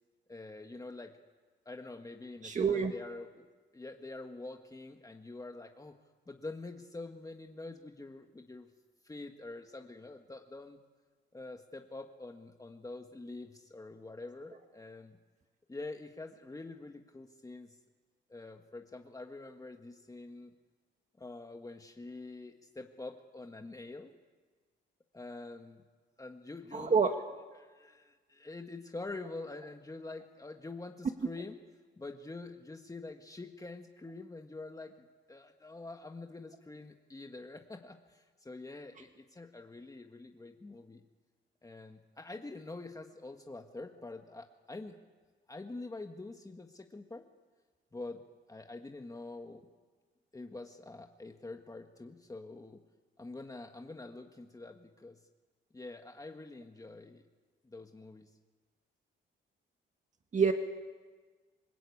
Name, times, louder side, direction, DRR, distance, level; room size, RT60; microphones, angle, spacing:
voice 1, 0.3-1.1 1.6-3.5 3.7-5.9 6.3-8.7 9.0-10.8 11.3-15.2 15.7-17.8 18.3-20.5 21.2-24.1 25.1-25.8 26.2-27.0 27.5-31.6 32.0-41.0 41.6-45.0 45.5-47.3 47.9-48.2 48.5-49.6 50.3-52.8 53.2-55.2 55.7-57.2 57.6-58.3, left 2 dB, 15° left, 4 dB, 1.6 m, -46 dB
voice 2, 2.4-2.9 26.7-27.2 60.3-60.5, right 5 dB, 40° right, 5 dB, 1.7 m, -27 dB
28.0 x 20.0 x 8.6 m, 1.4 s
cardioid pair, 90°, 20 cm